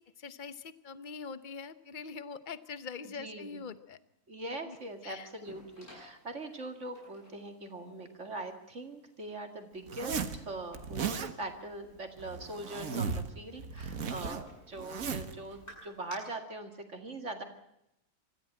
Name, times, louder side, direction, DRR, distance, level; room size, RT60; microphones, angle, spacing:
voice 1, 0.0-4.0 4.6-4.8 5.0-5.3, left 5 dB, 35° left, 13 dB, 1.0 m, -43 dB
voice 2, 3.0-3.6 4.3-17.4, right 2 dB, 50° right, 6 dB, 2.5 m, -42 dB
sound 1, 4.7-16.1, left 1 dB, 90° left, 8.0 m, -56 dB
Zipper (clothing), 9.9-10.4 10.7-11.3 12.2-13.3 13.6-15.3, right 6 dB, 65° right, 1.7 m, -36 dB
25.5 x 14.5 x 8.9 m, 0.83 s
omnidirectional pair, 1.5 m